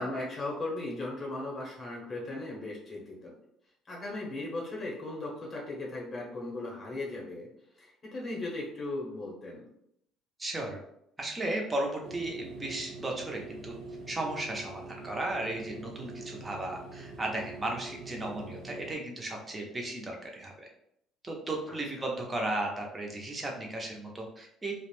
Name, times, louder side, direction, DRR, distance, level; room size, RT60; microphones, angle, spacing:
voice 1, 0.0-3.3 3.9-7.5 7.8-9.7 21.7-21.8, left 2 dB, 25° left, -3 dB, 0.8 m, -37 dB
voice 2, 10.4-10.8 11.2-13.7 14.1-20.7 21.2-24.7, right 1 dB, 15° right, 0 dB, 0.5 m, -35 dB
sound 1, 12.0-19.0, right 2 dB, 80° right, 0.7 m, -45 dB
2.5 x 2.0 x 3.0 m, 0.74 s
cardioid pair, 140°, 0 cm